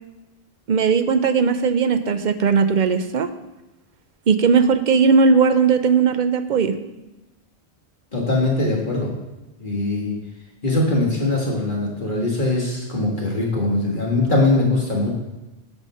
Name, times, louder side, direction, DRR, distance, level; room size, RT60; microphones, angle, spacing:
voice 1, 0.7-3.3 4.3-6.8, right 5 dB, 50° right, 9 dB, 0.7 m, -18 dB
voice 2, 8.1-9.1 9.6-10.2 10.6-15.1, left 2 dB, 50° left, -2 dB, 1.7 m, -21 dB
8.2 x 6.5 x 5.5 m, 1.0 s
omnidirectional pair, 1.1 m